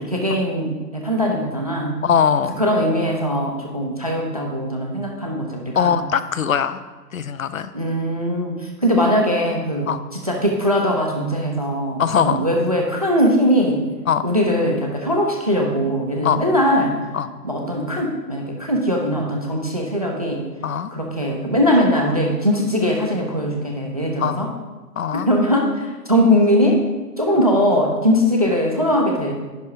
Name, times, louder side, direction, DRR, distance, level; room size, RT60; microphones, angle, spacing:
voice 1, 0.0-2.0 2.6-6.0 7.7-9.9 10.2-13.8 14.2-17.0 17.4-20.5 20.9-24.5 25.3-26.9 27.2-29.3, equal, 25° right, 1 dB, 0.5 m, -20 dB
voice 2, 2.0-2.6 5.8-6.8 7.1-7.7 9.9-10.0 12.0-12.4 14.1-14.2 16.2-16.4 17.1-17.3 20.6-20.9 24.2-24.6 25.0-25.3, left 7 dB, 55° left, 13 dB, 0.5 m, -21 dB
10.5 x 3.5 x 5.3 m, 1.3 s
figure-of-eight pair, 140°, 50 cm